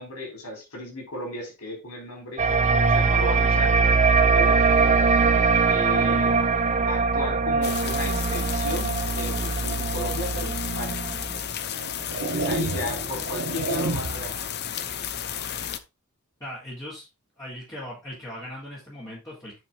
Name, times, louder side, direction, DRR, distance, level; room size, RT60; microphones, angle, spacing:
voice 1, 0.0-2.4 2.9-3.8 4.3-4.6 5.7-6.3 6.9-11.0 12.2-14.4, left 1 dB, 75° left, 3 dB, 4.2 m, -35 dB
sound 1, 2.4-11.4, right 4 dB, 30° right, 0.6 m, -22 dB
sound 2, 7.6-15.8, left 9 dB, 50° left, 0.7 m, -33 dB
sound 3, 10.7-10.9 11.6-14.4, right 3 dB, 55° right, 1.0 m, -30 dB
voice 2, 16.4-17.1 17.4-19.6, left 1 dB, 15° left, -9 dB, 3.7 m, -39 dB
9.7 x 5.2 x 3.7 m, 0.26 s
head